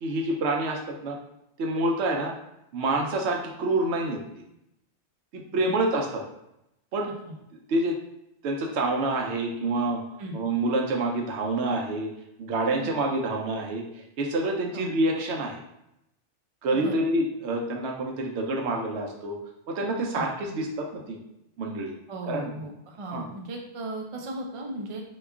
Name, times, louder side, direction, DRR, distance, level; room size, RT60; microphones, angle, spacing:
voice 1, 0.0-1.2 1.6-2.3 2.7-4.2 5.3-6.2 6.9-7.1 7.7-8.0 8.4-10.0 10.3-12.1 12.4-15.6 16.6-19.4 19.7-21.2 21.6-21.9 22.3-22.5 23.1-23.3, right 2 dB, 75° right, 1 dB, 0.9 m, -27 dB
voice 2, 22.1-25.0, right 1 dB, 50° right, 1 dB, 0.4 m, -36 dB
2.9 x 2.3 x 3.4 m, 0.83 s
omnidirectional pair, 1.2 m